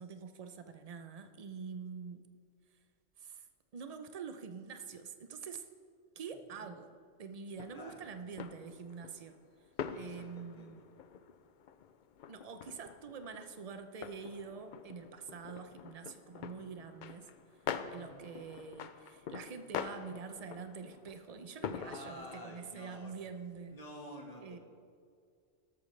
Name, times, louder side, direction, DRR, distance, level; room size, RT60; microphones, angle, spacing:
voice 1, 0.0-2.2 3.2-3.4 3.7-5.7 6.2-9.4 10.0-10.8 12.3-17.3 17.9-23.8 24.4-24.6, right 6 dB, 40° right, 9 dB, 0.6 m, -46 dB
sound 1, 7.6-22.3, left 7 dB, 60° left, 0.5 m, -45 dB
voice 2, 7.7-8.1 9.9-10.9 17.8-18.2 21.8-23.1 23.7-24.6, left 1 dB, 35° left, 1 dB, 1.6 m, -50 dB
13.0 x 12.5 x 3.2 m, 2.3 s
omnidirectional pair, 1.2 m